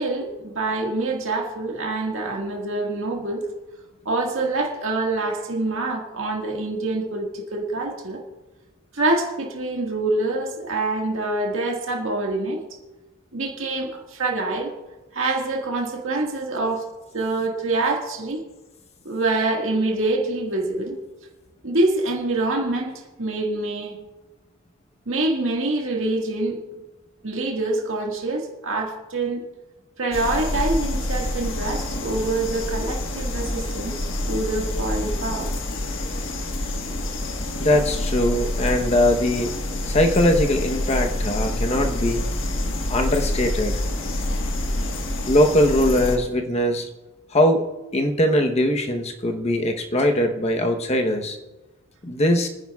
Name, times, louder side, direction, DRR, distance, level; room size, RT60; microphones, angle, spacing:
voice 1, 0.0-3.5 4.1-8.2 8.9-12.6 13.3-14.7 15.1-16.8 17.1-18.4 19.1-21.0 21.6-24.0 25.1-26.6 27.2-29.5 30.0-33.9 34.3-35.5, right 2 dB, 75° right, 0 dB, 1.8 m, -25 dB
sound 1, 30.1-46.2, left 1 dB, 70° left, 1.4 m, -27 dB
voice 2, 37.6-39.5 39.9-42.2 42.9-43.8 45.3-46.9 47.3-47.7 47.9-51.4 52.0-52.5, left 1 dB, 30° left, 4 dB, 0.9 m, -21 dB
29.0 x 10.0 x 2.4 m, 1.1 s
head